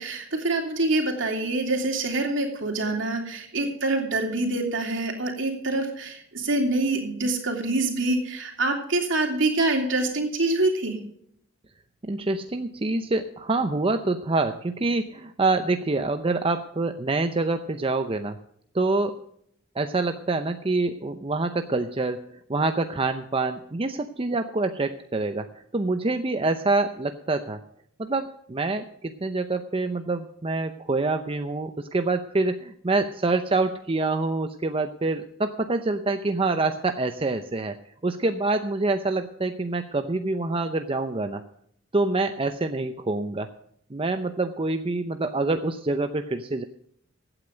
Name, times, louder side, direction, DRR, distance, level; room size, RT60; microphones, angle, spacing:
voice 1, 0.0-11.0, right 2 dB, 65° right, 3 dB, 3.0 m, -25 dB
voice 2, 12.0-18.4 18.7-19.2 19.8-25.5 25.7-27.6 28.0-37.8 38.0-41.4 41.9-43.5 43.9-46.6, right 3 dB, 30° right, 7 dB, 0.6 m, -26 dB
15.5 x 8.9 x 5.1 m, 0.67 s
head